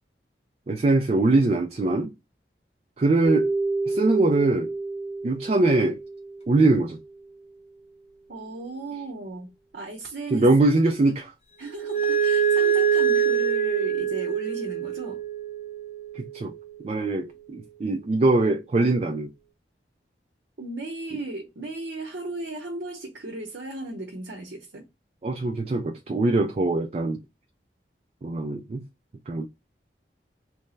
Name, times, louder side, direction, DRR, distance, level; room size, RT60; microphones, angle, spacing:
voice 1, 0.7-2.1 3.0-3.5 3.8-4.7 5.2-6.0 6.5-7.0 10.3-11.3 16.2-16.5 16.8-19.3 25.2-27.2 28.2-28.8 29.3-29.5, right 2 dB, 35° right, 0.3 m, -22 dB
sound 1, 3.2-6.2 11.7-16.6, right 6 dB, 35° left, 0.7 m, -25 dB
voice 2, 8.3-9.5 9.7-10.5 11.6-15.2 20.6-24.9, right 2 dB, 80° right, 0.7 m, -35 dB
3.2 x 2.1 x 3.9 m
head